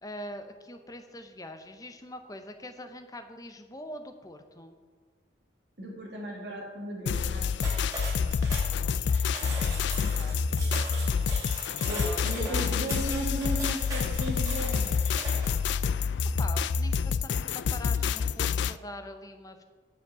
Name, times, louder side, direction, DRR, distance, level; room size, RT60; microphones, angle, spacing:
voice 1, 0.0-4.8 8.6-11.1 12.0-12.8 16.4-19.6, left 1 dB, 20° left, 7 dB, 0.7 m, -44 dB
voice 2, 5.8-7.5 11.6-15.4, right 1 dB, 60° right, -2 dB, 1.9 m, -36 dB
sound 1, 7.1-18.8, left 6 dB, 70° left, 0.3 m, -28 dB
sound 2, 7.6-15.6, right 1 dB, 20° right, 2.7 m, -39 dB
9.6 x 5.1 x 6.8 m, 1.5 s
head